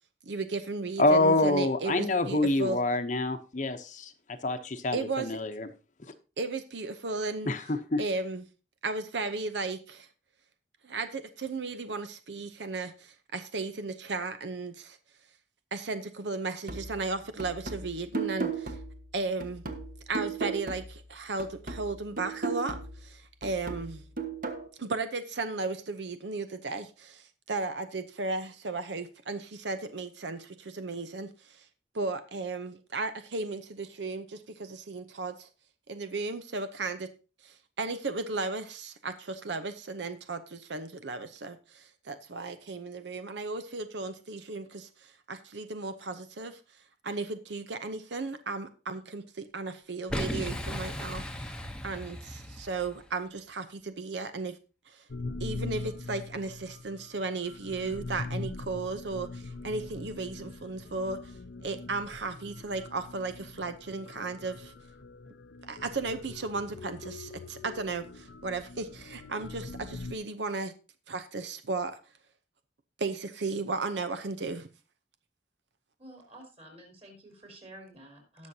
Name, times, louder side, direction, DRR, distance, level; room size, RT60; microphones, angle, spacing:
voice 1, 0.3-2.8 4.9-5.4 6.4-7.5 8.0-8.5 8.8-10.1 10.8-15.0 15.7-18.8 19.1-19.6 20.1-24.1 24.8-31.7 31.9-35.5 35.9-37.1 37.4-46.6 47.0-51.6 51.8-54.6 54.9-55.0 55.4-61.3 61.6-64.7 65.6-70.7 71.1-72.0 73.0-74.7, right 3 dB, 85° right, 0.8 m, -35 dB
voice 2, 1.0-5.7 7.5-8.0, left 2 dB, 45° left, 0.8 m, -26 dB
sound 1, 16.7-21.1 21.4-24.7, right 4 dB, 50° right, 1.3 m, -37 dB
Boom, 50.1-53.1, equal, 5° left, 0.8 m, -36 dB
sound 2, 55.1-70.1, left 3 dB, 85° left, 0.6 m, -42 dB
voice 3, 76.0-78.5, right 1 dB, 35° right, 4.1 m, -50 dB
18.5 x 6.3 x 2.8 m
head